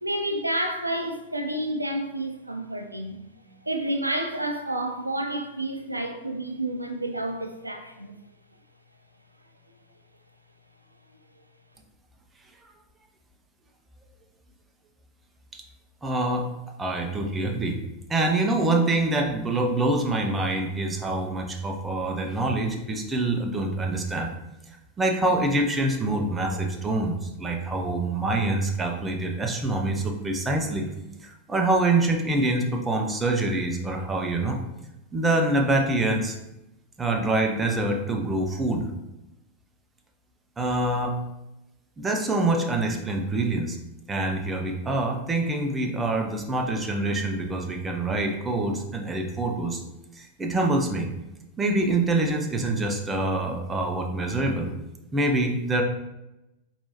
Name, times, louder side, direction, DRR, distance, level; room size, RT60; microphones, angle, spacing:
voice 1, 0.0-3.2 3.6-8.2, right 1 dB, 85° right, 5 dB, 0.4 m, -30 dB
voice 2, 16.0-16.5 16.8-17.8 18.1-24.3 25.0-30.8 31.2-34.6 35.1-36.4 37.0-38.9 40.6-41.2 42.0-43.8 44.1-49.8 50.2-51.1 51.6-54.7 55.1-55.8, right 2 dB, 15° right, 2 dB, 0.6 m, -25 dB
4.4 x 3.3 x 2.9 m, 0.93 s
figure-of-eight pair, 90°, 0 cm